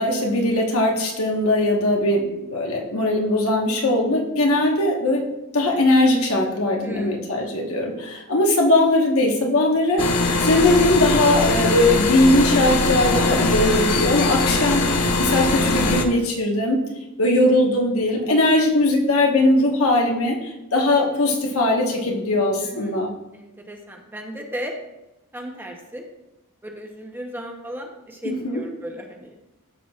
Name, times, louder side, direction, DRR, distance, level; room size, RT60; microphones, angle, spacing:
voice 1, 0.0-2.2 2.5-5.2 5.5-10.0 10.4-16.8 17.2-23.1 28.2-28.6, left 1 dB, 70° left, 0 dB, 1.3 m, -20 dB
voice 2, 6.8-7.2 13.6-13.7 22.6-23.0 23.3-24.8 25.3-26.1 26.6-29.3, equal, 10° right, 2 dB, 0.8 m, -35 dB
sound 1, 10.0-16.0, left 3 dB, 85° left, 0.7 m, -21 dB
13.0 x 5.9 x 2.4 m, 0.95 s
head